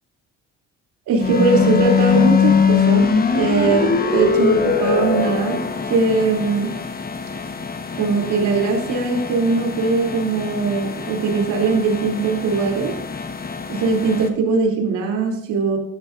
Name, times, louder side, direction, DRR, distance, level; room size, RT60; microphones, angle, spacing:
voice 1, 1.1-5.6 5.9-6.7 8.0-12.9 13.7-15.8, right 4 dB, 85° right, 0 dB, 2.9 m, -20 dB
sound 1, 1.2-14.3, left 6 dB, 30° left, 1.1 m, -22 dB
14.0 x 11.5 x 2.6 m, 0.72 s
cardioid pair, 90°, 30 cm